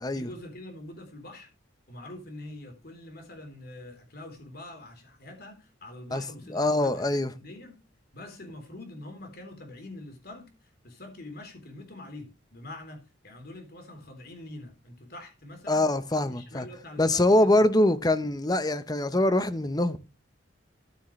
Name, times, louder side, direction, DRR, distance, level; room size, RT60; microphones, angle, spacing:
voice 1, 0.1-1.5 1.9-7.8 8.1-15.9 16.2-17.7, left 1 dB, 50° left, 3.6 m, -45 dB
voice 2, 6.5-7.3 15.7-16.7 17.0-20.0, left 1 dB, 20° left, 0.8 m, -24 dB
14.0 x 9.2 x 3.2 m
head